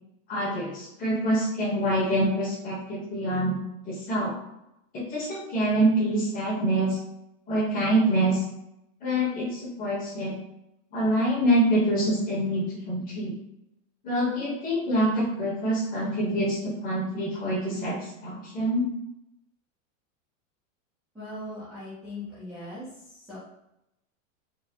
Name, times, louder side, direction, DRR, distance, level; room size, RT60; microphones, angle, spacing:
voice 1, 0.3-3.5 3.8-4.3 4.9-7.0 7.5-8.4 9.0-10.4 10.9-13.3 14.0-18.9, right 1 dB, 20° left, -5 dB, 1.0 m, -26 dB
voice 2, 21.1-22.9 23.3-23.4, left 1 dB, ahead, -13 dB, 0.3 m, -39 dB
4.0 x 2.0 x 2.8 m, 0.84 s
supercardioid pair, 150°, 40 cm